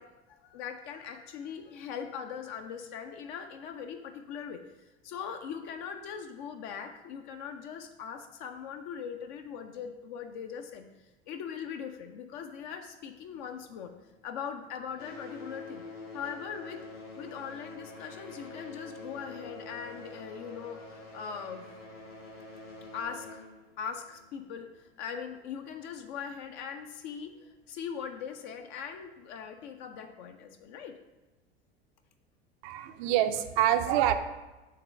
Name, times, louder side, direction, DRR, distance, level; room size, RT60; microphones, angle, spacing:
voice 1, 0.0-4.6 5.0-10.9 11.3-15.8 16.1-16.8 17.2-21.7 22.9-23.4 23.8-30.9, left 7 dB, 50° left, 5 dB, 0.6 m, -40 dB
sound 1, 13.1-14.5 14.8-25.1 25.9-26.0 26.7-26.8 27.4-27.5, left 2 dB, 65° left, 2.0 m, -47 dB
voice 2, 32.6-34.1, right 11 dB, 45° right, 9 dB, 0.5 m, -26 dB
6.6 x 3.7 x 5.3 m, 1.1 s
figure-of-eight pair, 75°, 32 cm